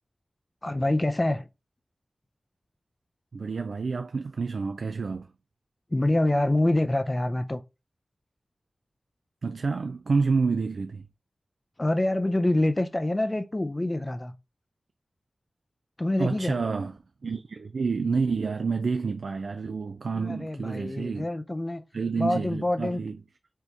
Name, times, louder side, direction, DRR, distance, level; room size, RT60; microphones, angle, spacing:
voice 1, 0.6-1.5 5.9-7.6 11.8-14.4 16.0-16.6 20.1-21.8 22.2-23.0, left 1 dB, 30° left, 0.4 m, -26 dB
voice 2, 3.3-5.3 9.4-11.1 16.2-16.9 17.2-21.3 21.9-23.2, right 4 dB, 85° right, 0.3 m, -28 dB
4.5 x 3.0 x 3.2 m
cardioid pair, 45°, 0 cm